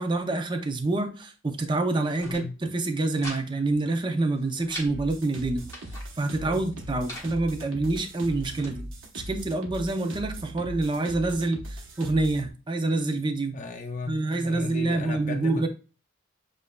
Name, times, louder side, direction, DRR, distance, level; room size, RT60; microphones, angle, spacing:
voice 1, 0.0-5.7 6.2-8.9 9.1-13.6 14.1-15.7, right 2 dB, 25° right, 0.5 m, -27 dB
sound 1, 2.0-2.4 2.8-3.4 3.7-3.8 4.2-4.9 5.4-6.1 6.7-7.3 8.0-8.7, equal, 15° left, 1.1 m, -42 dB
voice 2, 2.2-2.6 6.4-6.6 13.5-15.7, left 3 dB, 35° left, 0.6 m, -36 dB
sound 2, 4.9-12.5, right 1 dB, 65° right, 0.9 m, -39 dB
7.2 x 2.5 x 2.2 m
head